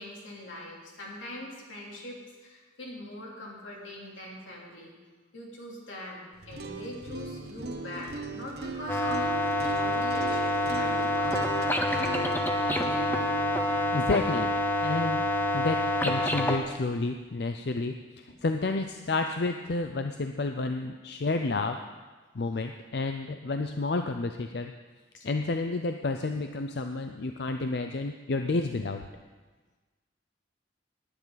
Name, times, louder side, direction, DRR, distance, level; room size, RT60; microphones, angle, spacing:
voice 1, 0.0-4.9 5.3-9.3 9.8-12.2 25.1-25.3, left 1 dB, 85° left, -3 dB, 3.3 m, -42 dB
sound 1, 6.3-16.4, right 3 dB, 55° right, 1.1 m, -39 dB
sound 2, 8.9-16.6, left 1 dB, 10° left, 0.8 m, -27 dB
voice 2, 13.9-14.5 14.8-15.3 15.5-21.8 22.3-24.7 25.2-29.0, left 3 dB, 55° left, 6 dB, 0.5 m, -30 dB
19.5 x 9.7 x 4.0 m, 1.3 s
head